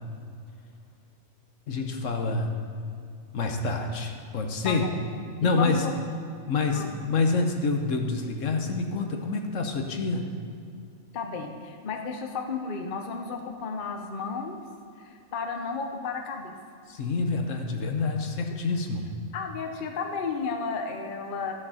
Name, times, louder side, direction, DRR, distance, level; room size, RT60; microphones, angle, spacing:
voice 1, 1.7-2.5 3.3-4.9 5.4-5.9 6.5-10.3 16.9-19.1, left 3 dB, 65° left, 4 dB, 1.3 m, -27 dB
voice 2, 4.6-5.0 5.4-5.9 6.7-6.9 11.1-14.6 15.0-16.6 19.3-21.5, left 5 dB, 45° left, 4 dB, 0.8 m, -33 dB
12.5 x 6.7 x 5.6 m, 2.4 s
omnidirectional pair, 1.4 m